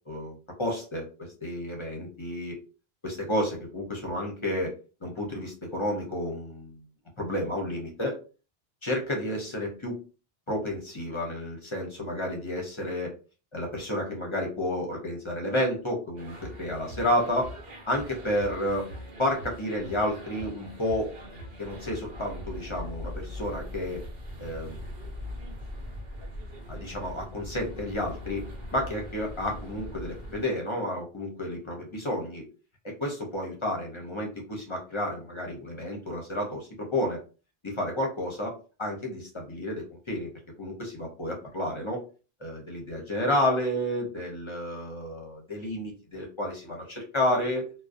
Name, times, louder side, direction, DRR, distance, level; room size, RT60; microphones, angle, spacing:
voice 1, 0.1-2.6 3.0-4.7 5.0-6.8 7.2-8.1 8.8-10.0 10.5-13.1 13.5-17.5 17.9-18.9 19.2-21.1 21.6-24.0 24.4-24.9 26.7-32.4 32.8-37.2 37.6-40.3 40.6-42.0 42.4-47.7, left 1 dB, 35° left, 0 dB, 0.6 m, -31 dB
sound 1, 16.2-30.4, left 1 dB, 75° right, 1.0 m, -41 dB
2.5 x 2.0 x 2.4 m, 0.35 s
omnidirectional pair, 1.0 m